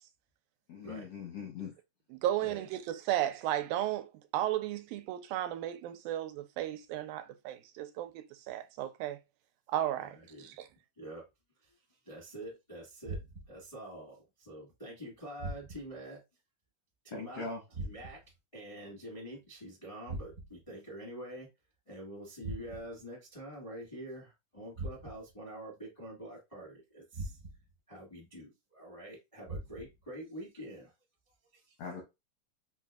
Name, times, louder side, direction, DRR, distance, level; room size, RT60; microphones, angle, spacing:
voice 1, 0.7-1.7 17.1-17.6 31.8-32.0, left 4 dB, 80° left, 1.4 m, -40 dB
voice 2, 2.1-9.2 9.7-10.2 10.4-10.7, right 12 dB, 85° right, 2.3 m, -34 dB
voice 3, 10.0-10.6 11.0-11.2 11.6-13.2 13.5-16.2 17.0-18.2 18.5-21.5 21.8-27.4 27.9-30.9 31.5-31.6, right 1 dB, 55° left, 0.4 m, -46 dB
sound 1, 13.0-13.7 15.4-16.0 17.7-18.4 20.1-20.7 22.4-23.0 24.7-25.4 27.1-27.8 29.5-30.1, right 2 dB, 60° right, 0.9 m, -42 dB
5.3 x 2.6 x 2.3 m
omnidirectional pair, 4.0 m